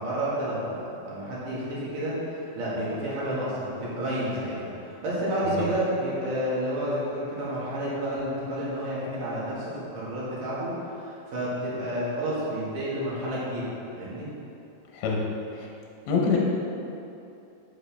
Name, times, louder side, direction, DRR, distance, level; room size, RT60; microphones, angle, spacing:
voice 1, 0.0-14.3, right 1 dB, 55° right, -8 dB, 2.5 m, -30 dB
voice 2, 16.1-16.4, left 5 dB, 75° left, -2 dB, 3.1 m, -23 dB
8.0 x 7.7 x 3.5 m, 2.8 s
omnidirectional pair, 5.9 m